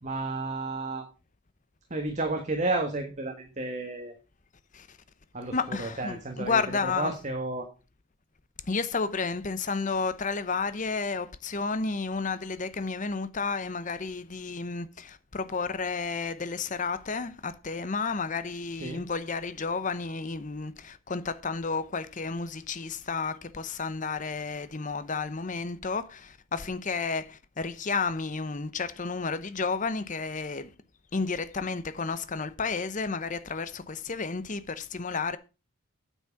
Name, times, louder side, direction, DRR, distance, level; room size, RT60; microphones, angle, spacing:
voice 1, 0.0-1.1 1.9-4.1 5.3-7.7 18.8-19.0, right 2 dB, 35° right, 1.5 m, -32 dB
voice 2, 5.5-7.1 8.6-30.7 31.1-35.4, left 4 dB, 35° left, 0.8 m, -32 dB
9.3 x 7.3 x 5.9 m
head